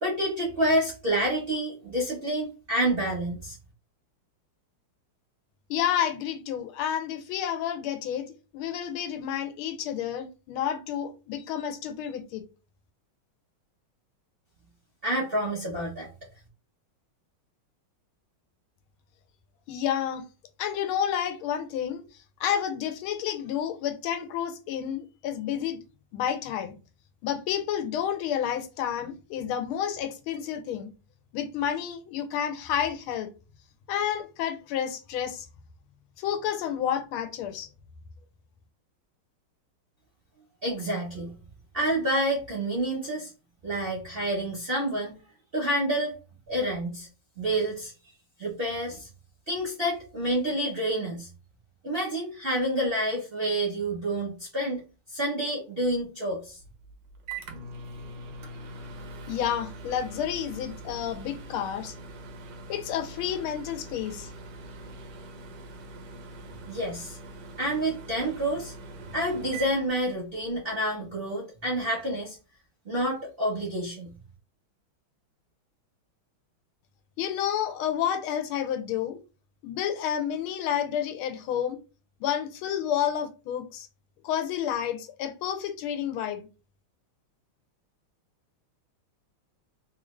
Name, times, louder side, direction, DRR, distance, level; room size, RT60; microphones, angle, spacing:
voice 1, 0.0-3.6 15.0-16.1 40.6-41.3 41.7-43.3 43.6-45.1 45.5-46.1 46.5-47.1 47.4-47.9 48.4-49.1 49.5-51.3 51.8-54.8 55.1-56.6 66.7-67.2 67.6-68.7 69.1-72.4 72.8-74.1, right 1 dB, 45° right, 0.7 m, -28 dB
voice 2, 5.7-12.4 19.7-20.2 20.6-22.0 22.4-25.8 26.1-26.7 27.2-30.9 31.3-33.3 33.9-35.5 36.2-37.7 59.3-61.9 62.7-64.3 77.2-79.2 79.6-81.8 82.2-83.9 84.2-86.5, left 9 dB, 90° left, 1.4 m, -30 dB
Microwave oven, 56.6-70.6, right 2 dB, 70° right, 1.1 m, -43 dB
3.4 x 2.5 x 3.1 m
omnidirectional pair, 2.2 m